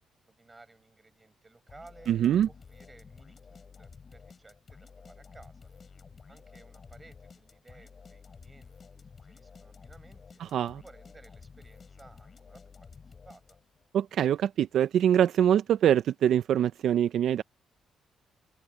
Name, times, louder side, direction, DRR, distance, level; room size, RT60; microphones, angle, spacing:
voice 1, 0.2-5.7 6.3-10.4 10.8-13.6, right 3 dB, 20° right, 7.8 m, -57 dB
sound 1, 1.7-13.9, left 5 dB, 40° left, 6.6 m, -52 dB
voice 2, 2.1-2.5 10.5-10.8 13.9-17.4, right 10 dB, 70° right, 0.5 m, -24 dB
cardioid pair, 90°, 0 cm